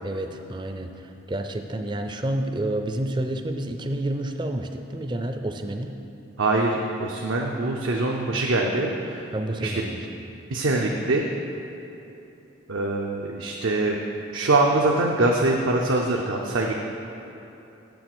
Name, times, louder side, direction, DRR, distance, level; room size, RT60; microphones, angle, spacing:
voice 1, 0.0-5.9 9.3-10.4, right 1 dB, 20° right, 6 dB, 0.4 m, -29 dB
voice 2, 6.4-9.2 9.6-9.7 10.5-11.2 12.7-14.0 14.3-16.7, right 2 dB, 80° right, 0 dB, 0.6 m, -23 dB
7.3 x 7.0 x 6.0 m, 3.0 s
head